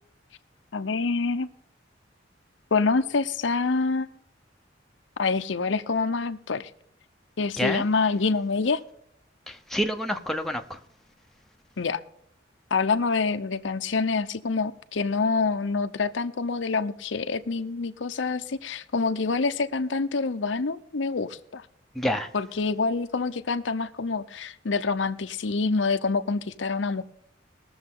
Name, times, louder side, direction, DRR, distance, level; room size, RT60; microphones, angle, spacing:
voice 1, 0.7-1.5 2.7-4.1 5.2-6.7 7.4-8.8 11.8-12.0 12.7-21.6 22.3-27.0, left 4 dB, 75° left, 0.7 m, -26 dB
voice 2, 7.6-7.9 9.5-10.8 21.9-22.3, equal, ahead, 0.9 m, -28 dB
20.5 x 7.1 x 3.7 m
head